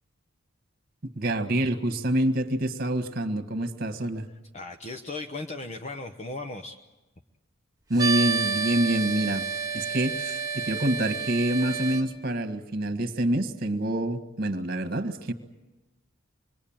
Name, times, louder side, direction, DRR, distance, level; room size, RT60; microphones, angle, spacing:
voice 1, 1.0-4.3 7.9-9.4 9.7-15.3, right 1 dB, 50° right, 11 dB, 1.7 m, -27 dB
voice 2, 4.3-6.8, left 2 dB, 35° left, 6 dB, 0.9 m, -37 dB
sound 1, 8.0-12.0, right 5 dB, 20° right, 1.7 m, -29 dB
26.5 x 21.5 x 8.9 m, 1.1 s
head